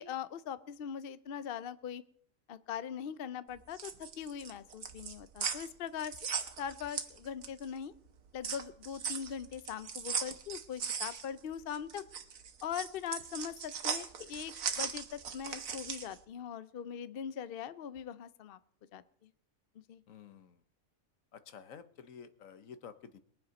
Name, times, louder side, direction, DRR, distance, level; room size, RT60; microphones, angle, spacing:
voice 1, 0.0-2.0 2.5-6.2 6.6-7.9 8.3-12.0 12.6-18.6 18.9-19.3 19.9-20.0, left 8 dB, 55° left, 14 dB, 0.7 m, -41 dB
sound 1, 3.6-7.7 8.1-16.2, right 6 dB, 75° right, 1.5 m, -39 dB
voice 2, 20.1-20.6 21.3-23.2, left 7 dB, 70° left, 11 dB, 1.3 m, -51 dB
22.0 x 7.4 x 5.2 m, 0.64 s
omnidirectional pair, 1.4 m